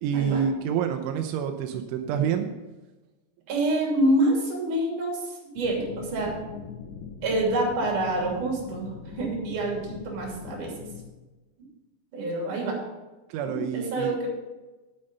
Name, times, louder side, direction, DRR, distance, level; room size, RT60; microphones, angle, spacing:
voice 1, 0.0-2.5 13.3-14.2, right 8 dB, 85° right, 5 dB, 3.2 m, -27 dB
voice 2, 3.5-6.4 7.2-10.7 12.1-12.8 13.4-14.3, right 1 dB, 45° right, -1 dB, 4.1 m, -27 dB
Rolling Ball Loop, 5.6-11.0, left 5 dB, 85° left, 1.6 m, -41 dB
9.3 x 8.8 x 5.5 m, 1.1 s
omnidirectional pair, 5.4 m